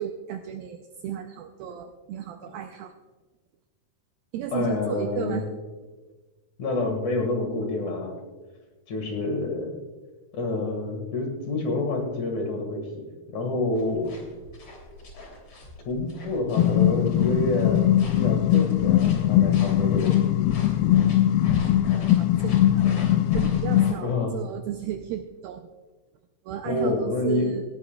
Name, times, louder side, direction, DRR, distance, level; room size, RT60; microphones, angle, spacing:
voice 1, 0.0-2.9 4.3-5.5 21.9-22.8 23.3-25.7 26.5-27.6, right 10 dB, 80° right, 5 dB, 2.1 m, -34 dB
voice 2, 4.5-5.5 6.6-8.2 8.9-9.8 10.3-14.1 15.9-20.5 20.8-21.0 24.0-24.3 26.7-27.5, left 2 dB, 55° left, 2 dB, 2.7 m, -28 dB
sound 1, 13.7-23.9, left 1 dB, 35° left, 3.5 m, -40 dB
sound 2, 16.6-23.9, left 12 dB, 85° left, 2.3 m, -21 dB
18.0 x 17.5 x 2.3 m, 1.3 s
omnidirectional pair, 4.9 m